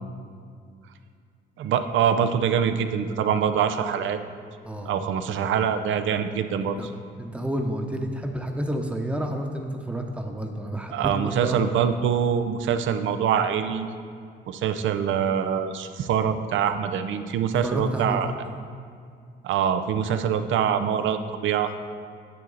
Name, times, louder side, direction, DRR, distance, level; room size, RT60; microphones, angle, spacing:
voice 1, 1.6-4.2 4.9-6.9 10.9-13.9 14.5-18.3 19.4-21.9, right 8 dB, 75° right, 9 dB, 0.6 m, -24 dB
voice 2, 7.2-11.7 17.6-18.3, right 1 dB, 5° right, 3 dB, 0.9 m, -30 dB
9.3 x 7.0 x 4.0 m, 2.3 s
cardioid pair, 90°, 20 cm